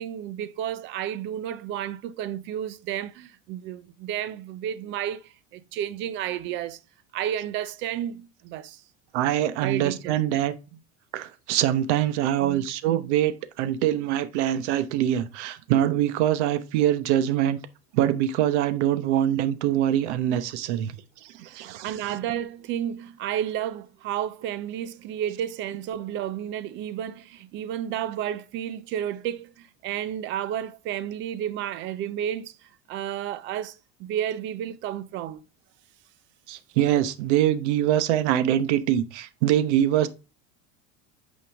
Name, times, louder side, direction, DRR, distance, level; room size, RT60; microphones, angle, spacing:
voice 1, 0.0-6.8 7.1-8.8 9.6-10.2 12.4-13.1 21.4-35.4, right 10 dB, 35° right, 0.5 m, -32 dB
voice 2, 9.1-10.5 11.1-17.6 17.9-20.9 21.4-22.2 36.5-40.1, right 11 dB, 85° right, 1.0 m, -24 dB
8.9 x 5.3 x 3.4 m
cardioid pair, 170°, 34 cm